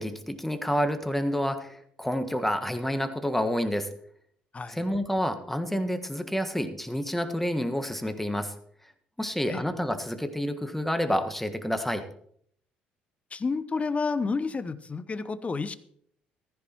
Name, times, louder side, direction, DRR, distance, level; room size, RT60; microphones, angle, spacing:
voice 1, 0.0-3.9 4.7-8.5 9.2-12.1, equal, 5° left, 9 dB, 1.5 m, -29 dB
voice 2, 13.3-15.8, left 4 dB, 30° left, 14 dB, 0.9 m, -30 dB
15.0 x 14.5 x 3.0 m, 0.64 s
figure-of-eight pair, 50°, 5 cm